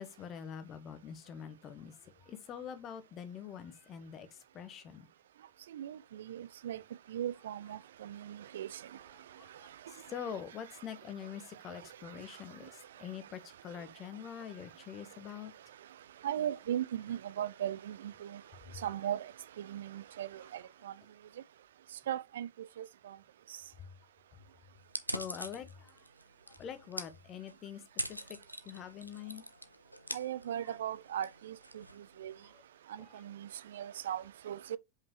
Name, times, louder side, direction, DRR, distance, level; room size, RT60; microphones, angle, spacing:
voice 1, 0.0-5.1 8.9-15.5 18.4-18.8 20.4-21.1 23.8-23.9 25.1-26.0 26.5-27.8 28.1-28.4 28.6-29.4 30.6-30.7 32.4-32.6 32.9-33.3, left 8 dB, 30° left, 1.1 m, -45 dB
voice 2, 6.3-6.8 7.1-7.8 8.1-8.2 8.5-8.7 16.2-18.0 18.8-19.2 19.7-20.3 22.1-22.5 30.1-31.5 32.2-32.3 33.3-33.4 33.7-34.8, right 10 dB, 60° right, 0.3 m, -36 dB
sound 1, 24.8-32.6, equal, 90° left, 0.7 m, -44 dB
5.4 x 4.9 x 4.6 m
figure-of-eight pair, 90°, 0 cm